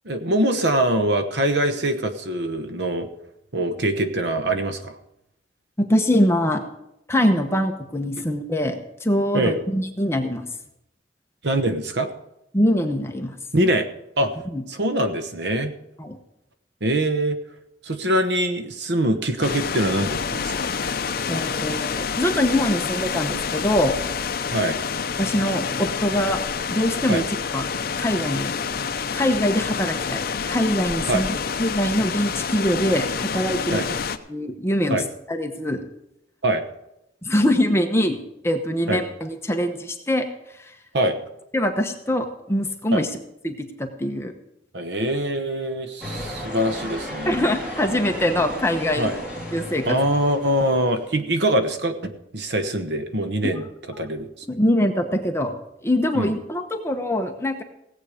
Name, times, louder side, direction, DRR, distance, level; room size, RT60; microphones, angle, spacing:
voice 1, 0.0-3.1 3.5-5.0 9.3-9.6 11.4-12.1 13.5-13.9 14.2-14.3 14.7-15.7 16.8-17.4 17.8-20.7 24.5-24.8 27.1-27.2 31.1-31.3 33.7-33.9 34.9-35.0 36.4-36.6 38.9-39.0 40.9-41.2 42.9-43.0 44.7-47.3 49.0-49.1 49.8-53.6 54.0-54.3 56.1-56.3, right 1 dB, 65° right, 9 dB, 1.1 m, -23 dB
voice 2, 5.8-6.6 7.1-10.4 12.5-13.3 14.4-14.6 16.0-16.2 21.3-23.9 25.2-26.4 26.7-27.2 27.5-27.7 28.0-28.6 29.1-31.3 31.6-33.8 34.3-35.0 35.3-35.8 37.2-38.2 38.4-40.2 40.6-40.7 41.5-43.1 43.4-44.3 47.3-49.1 49.5-50.0 53.4-53.6 54.5-55.5 55.8-57.6, left 1 dB, 15° left, 4 dB, 1.0 m, -23 dB
sound 1, 19.4-34.2, left 6 dB, 55° left, 0.6 m, -28 dB
sound 2, 46.0-51.1, equal, 5° right, 2.9 m, -34 dB
17.5 x 8.2 x 5.0 m, 0.85 s
head